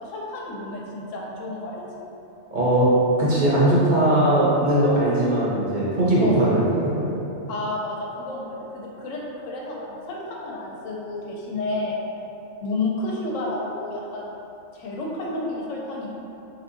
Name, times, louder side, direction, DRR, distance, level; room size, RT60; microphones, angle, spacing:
voice 1, 0.0-2.1 6.2-6.5 7.5-12.0 12.6-14.3 14.7-16.1, left 2 dB, 80° left, -2 dB, 0.9 m, -31 dB
voice 2, 2.5-2.9 3.2-6.6 7.0-7.2, right 1 dB, 45° right, -8 dB, 0.8 m, -19 dB
3.4 x 2.8 x 2.5 m, 3.0 s
omnidirectional pair, 1.3 m